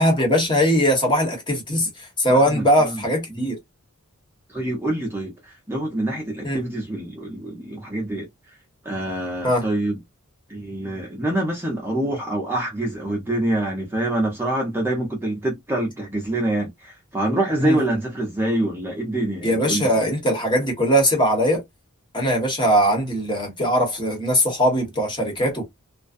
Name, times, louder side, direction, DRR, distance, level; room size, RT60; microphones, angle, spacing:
voice 1, 0.0-3.6 6.4-6.6 9.4-9.7 17.6-17.8 19.4-21.6 22.1-25.6, equal, 20° left, 1.1 m, -20 dB
voice 2, 2.3-3.0 3.3-3.4 4.5-8.3 8.8-10.0 10.5-19.9, right 1 dB, 10° right, 0.7 m, -26 dB
2.5 x 2.2 x 2.4 m
head